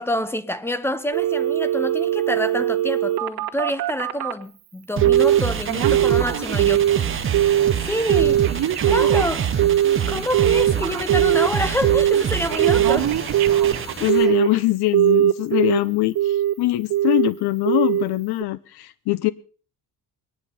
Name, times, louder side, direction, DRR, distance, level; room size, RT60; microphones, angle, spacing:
voice 1, 0.0-6.9 7.8-8.4 8.8-9.5 10.1-13.1, left 1 dB, 5° left, 0.9 m, -27 dB
Telephone, 1.1-4.4 5.0-5.4 5.7-7.0 7.3-7.7 8.1-11.5 11.8-12.2 12.5-14.6 14.9-15.8 16.2-16.5 16.9-17.3 17.7-18.0 18.4-18.5, right 12 dB, 70° right, 2.0 m, -20 dB
sound 1, 5.0-14.1, right 9 dB, 30° right, 0.9 m, -27 dB
sound 2, 5.1-14.3, left 4 dB, 40° left, 3.3 m, -39 dB
voice 2, 14.0-19.3, left 18 dB, 85° left, 0.8 m, -22 dB
22.5 x 10.5 x 5.4 m
cardioid pair, 155°, 38 cm